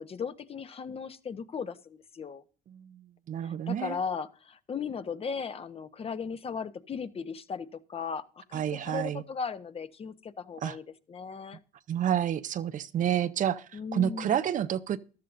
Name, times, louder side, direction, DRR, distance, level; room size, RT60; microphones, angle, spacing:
voice 1, 0.0-2.4 3.4-10.8 11.1-11.6 13.7-14.4, left 5 dB, 35° left, 0.9 m, -37 dB
voice 2, 2.7-4.0 8.5-9.2 10.6-10.8 11.9-15.0, right 10 dB, 50° right, 0.6 m, -29 dB
14.0 x 12.5 x 2.6 m
cardioid pair, 110°, 17 cm